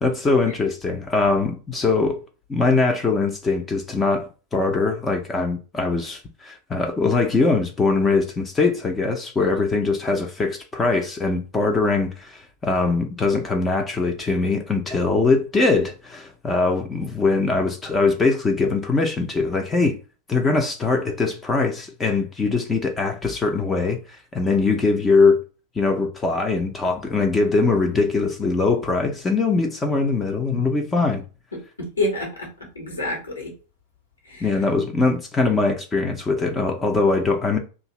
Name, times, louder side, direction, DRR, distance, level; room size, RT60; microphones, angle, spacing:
voice 1, 0.0-2.2 2.5-20.0 20.3-24.0 24.3-25.4 25.7-31.2 34.4-37.6, left 3 dB, 15° left, 0.5 m, -22 dB
voice 2, 31.5-33.5 34.3-34.4, left 2 dB, 75° left, 1.3 m, -28 dB
2.6 x 2.5 x 3.1 m
figure-of-eight pair, 90°, 0 cm